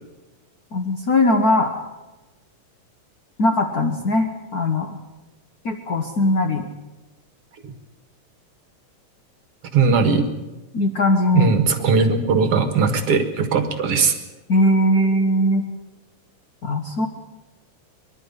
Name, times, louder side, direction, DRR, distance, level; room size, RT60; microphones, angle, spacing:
voice 1, 0.7-1.7 3.4-5.0 5.6-6.7 10.7-11.5 14.5-15.6 16.6-17.1, left 1 dB, 55° left, 4 dB, 1.0 m, -20 dB
voice 2, 9.7-10.3 11.3-14.2, right 5 dB, 50° right, 8 dB, 2.1 m, -19 dB
24.5 x 12.0 x 10.0 m, 1.1 s
omnidirectional pair, 3.7 m